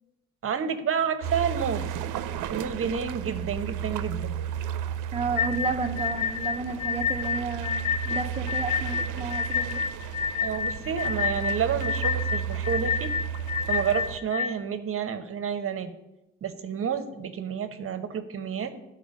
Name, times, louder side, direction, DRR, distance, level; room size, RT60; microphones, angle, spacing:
voice 1, 0.4-1.9 2.5-4.4 10.4-13.1 13.7-15.9 16.4-18.7, right 7 dB, 45° right, 9 dB, 0.9 m, -29 dB
sound 1, 1.2-14.2, right 9 dB, 85° right, 0.6 m, -33 dB
voice 2, 5.1-9.8, right 4 dB, 20° right, 3 dB, 0.6 m, -32 dB
sound 2, 5.4-14.5, left 7 dB, 80° left, 0.6 m, -29 dB
13.0 x 4.4 x 5.2 m, 0.96 s
cardioid pair, 90°, 30 cm